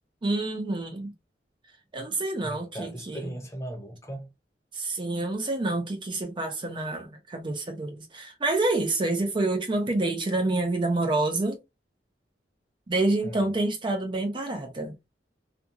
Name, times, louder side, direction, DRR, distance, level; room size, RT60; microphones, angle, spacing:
voice 1, 0.2-1.1 1.9-3.3 4.7-11.6 12.9-14.9, right 2 dB, 30° right, 0.4 m, -28 dB
voice 2, 2.4-4.3 13.2-13.5, right 1 dB, 15° left, 0.7 m, -38 dB
2.5 x 2.3 x 2.7 m
head